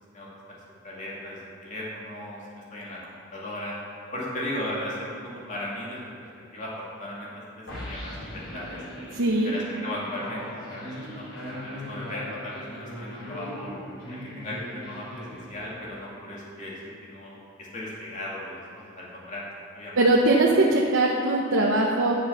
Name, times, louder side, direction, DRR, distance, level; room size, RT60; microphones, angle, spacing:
voice 1, 0.8-3.8 4.1-6.1 6.5-7.3 7.6-8.8 9.4-13.7 14.1-16.7 17.0-20.1, left 1 dB, 40° left, -6 dB, 2.4 m, -37 dB
sound 1, 7.7-16.0, equal, 80° left, 2.8 m, -39 dB
voice 2, 9.1-9.5 20.0-22.2, right 2 dB, 75° right, -3 dB, 0.9 m, -21 dB
9.9 x 6.9 x 5.8 m, 2.6 s
head